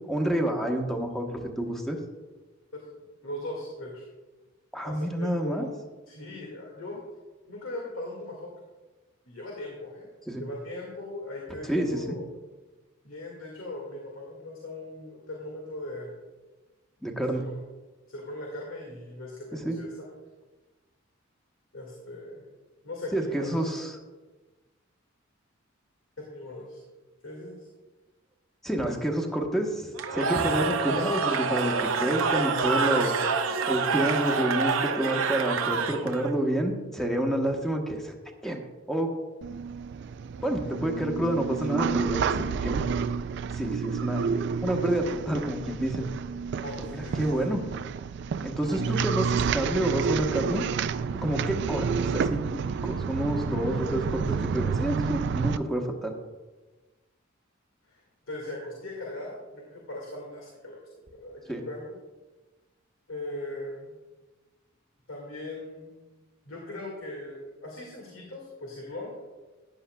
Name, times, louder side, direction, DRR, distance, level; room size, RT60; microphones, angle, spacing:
voice 1, 0.1-2.0 4.7-5.7 10.3-10.4 11.7-12.1 17.0-17.4 19.6-19.8 23.1-23.9 28.6-33.1 33.7-38.1 38.4-38.6 38.9-39.1 40.4-42.8 43.5-44.2 44.6-46.1 46.9-47.6 48.4-50.6 51.2-51.9 52.1-56.1 61.5-61.6, right 1 dB, ahead, 2 dB, 1.1 m, -28 dB
voice 2, 2.7-4.0 4.8-5.6 6.1-7.0 7.5-8.5 9.3-10.1 10.4-12.2 13.0-16.2 17.3-17.6 18.1-20.1 21.7-22.4 22.8-23.8 26.2-26.8 27.2-27.7 46.6-47.5 57.9-61.9 63.1-63.9 65.1-65.9 66.5-69.1, left 1 dB, 90° left, -2 dB, 1.9 m, -39 dB
Cheering / Crowd, 30.0-36.3, right 5 dB, 80° right, 0.7 m, -27 dB
sound 1, 39.4-55.6, right 6 dB, 60° right, 0.3 m, -30 dB
14.0 x 9.8 x 2.3 m, 1.2 s
head